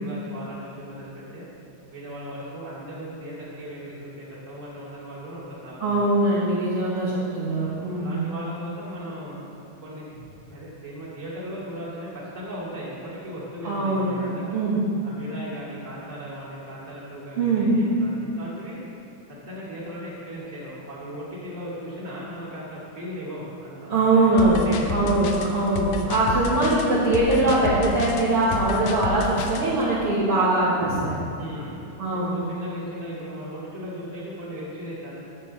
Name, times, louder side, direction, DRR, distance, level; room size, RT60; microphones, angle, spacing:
voice 1, 0.0-1.5 1.9-6.0 7.7-10.1 10.5-14.6 15.0-18.8 19.4-25.1 31.4-31.8 32.1-35.2, equal, 20° right, -8 dB, 2.6 m, -37 dB
voice 2, 5.8-8.2 13.6-14.2 14.5-14.8 17.4-17.7 23.9-31.2 32.0-32.4, right 2 dB, 50° right, -10 dB, 2.2 m, -22 dB
sound 1, 24.4-29.7, left 5 dB, 80° left, 2.0 m, -30 dB
11.0 x 8.3 x 4.3 m, 2.7 s
omnidirectional pair, 3.6 m